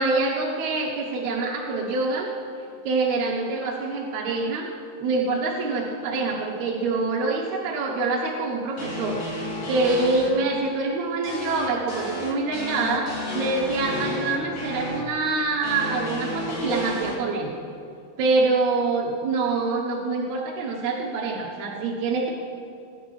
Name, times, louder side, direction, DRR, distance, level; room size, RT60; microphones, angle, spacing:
voice 1, 0.0-2.3 2.9-4.7 5.0-17.5 18.2-22.3, right 3 dB, 70° right, -2 dB, 2.1 m, -25 dB
sound 1, 8.8-10.3 11.2-15.0 15.6-17.1, left 1 dB, 80° left, 3.5 m, -31 dB
20.5 x 10.0 x 3.1 m, 2.4 s
omnidirectional pair, 3.7 m